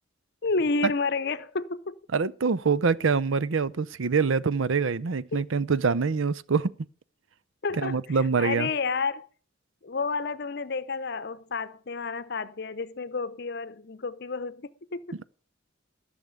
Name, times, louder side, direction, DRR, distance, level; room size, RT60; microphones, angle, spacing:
voice 1, 0.4-2.0 5.3-5.4 7.6-9.3 9.8-15.0, left 4 dB, 55° left, 0.7 m, -30 dB
voice 2, 2.1-6.8 7.8-8.7, right 5 dB, 80° right, 0.6 m, -25 dB
14.5 x 6.5 x 8.2 m
head